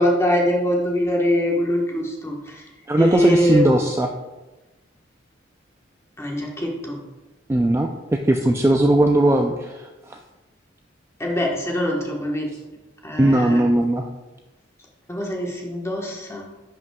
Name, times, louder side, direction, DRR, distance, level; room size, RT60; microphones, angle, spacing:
voice 1, 0.0-2.6 3.0-3.6 6.2-7.0 11.2-12.5 13.0-13.6 15.1-16.5, left 1 dB, 15° left, -1 dB, 1.2 m, -23 dB
voice 2, 2.9-4.1 7.5-10.2 13.2-14.1, right 1 dB, 15° right, 3 dB, 0.3 m, -18 dB
10.5 x 5.4 x 2.3 m, 1.1 s
head